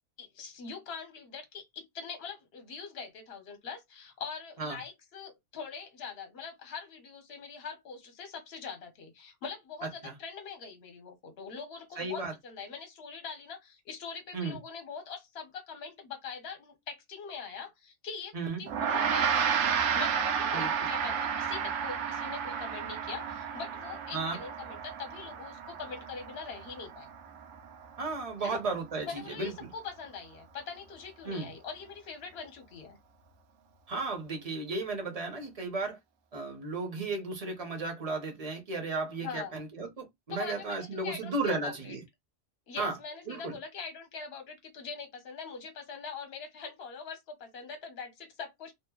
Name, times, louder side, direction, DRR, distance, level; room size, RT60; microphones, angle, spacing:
voice 1, 0.2-27.1 28.4-28.6 29.0-33.0 39.2-39.6 40.3-42.0 42.7-48.7, left 5 dB, 55° left, 1.0 m, -43 dB
voice 2, 12.0-12.3 14.3-14.6 18.3-18.6 20.5-20.7 24.1-24.4 28.0-29.5 31.2-31.5 33.9-36.0 36.3-42.0 42.8-43.0 43.3-43.5, right 3 dB, 35° right, 0.7 m, -34 dB
Gong, 18.7-28.2, right 7 dB, 75° right, 0.9 m, -32 dB
2.8 x 2.1 x 2.3 m
omnidirectional pair, 1.3 m